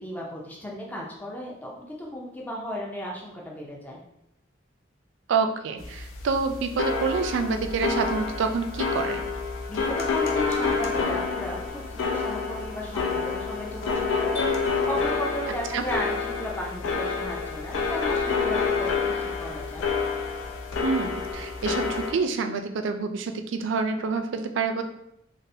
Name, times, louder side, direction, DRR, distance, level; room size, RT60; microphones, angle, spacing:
voice 1, 0.0-4.0 9.7-19.9, equal, 10° left, -3 dB, 0.4 m, -35 dB
voice 2, 5.3-9.3 15.7-15.8 20.8-24.8, right 4 dB, 70° right, 7 dB, 0.3 m, -27 dB
sound 1, 5.8-22.1, left 4 dB, 90° left, 0.4 m, -28 dB
sound 2, 14.3-16.2, left 1 dB, 65° left, 1.2 m, -37 dB
3.9 x 2.0 x 2.6 m, 0.81 s
head